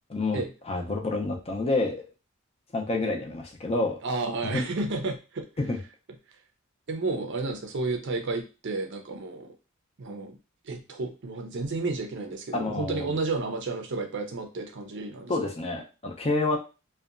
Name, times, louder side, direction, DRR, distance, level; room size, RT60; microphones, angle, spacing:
voice 1, 0.1-2.1 2.7-3.9 4.4-4.6 5.6-5.8 12.5-13.2 15.3-16.6, left 2 dB, 30° left, 1 dB, 0.5 m, -28 dB
voice 2, 4.0-5.5 6.9-9.5 10.0-10.4 10.6-15.3, right 3 dB, 55° right, 4 dB, 0.5 m, -31 dB
2.7 x 2.2 x 2.4 m, 0.31 s
head